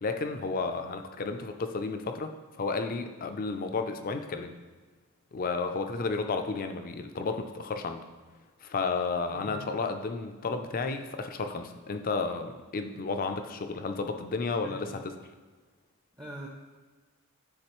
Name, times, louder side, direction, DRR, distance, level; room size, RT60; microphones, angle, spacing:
voice 1, 0.0-4.6 5.3-8.0 8.6-15.1, left 4 dB, 40° left, 7 dB, 0.4 m, -32 dB
voice 2, 9.3-9.7 14.6-15.0 16.2-16.5, right 1 dB, 15° right, -1 dB, 0.6 m, -43 dB
9.7 x 3.9 x 3.0 m, 1.3 s
head